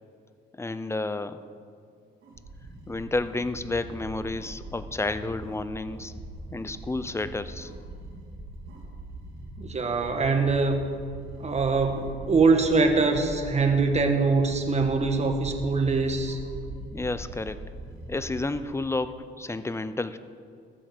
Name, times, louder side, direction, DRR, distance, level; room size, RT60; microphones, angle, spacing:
voice 1, 0.6-1.4 2.9-6.1 6.5-7.7 16.9-17.7 18.1-20.2, left 2 dB, 15° left, 13 dB, 0.6 m, -31 dB
sound 1, 2.2-18.6, right 1 dB, 70° right, 2.7 m, -42 dB
voice 2, 9.6-10.8 11.4-16.4, right 4 dB, 35° right, 5 dB, 1.5 m, -23 dB
14.0 x 8.0 x 6.6 m, 2.2 s
cardioid pair, 90°, 20 cm